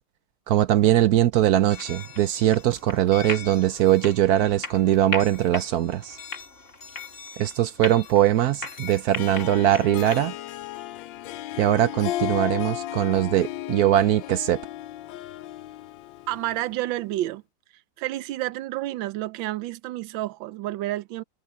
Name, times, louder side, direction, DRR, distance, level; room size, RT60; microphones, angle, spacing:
voice 1, 0.5-6.2 7.4-10.3 11.6-14.6, right 12 dB, 70° right, 0.9 m, -21 dB
sound 1, 1.7-10.2, left 4 dB, 40° left, 3.4 m, -38 dB
Harp, 9.1-16.9, left 14 dB, 80° left, 1.3 m, -34 dB
voice 2, 16.3-17.4 18.0-21.2, right 15 dB, 85° right, 1.4 m, -30 dB
omnidirectional pair, 2.1 m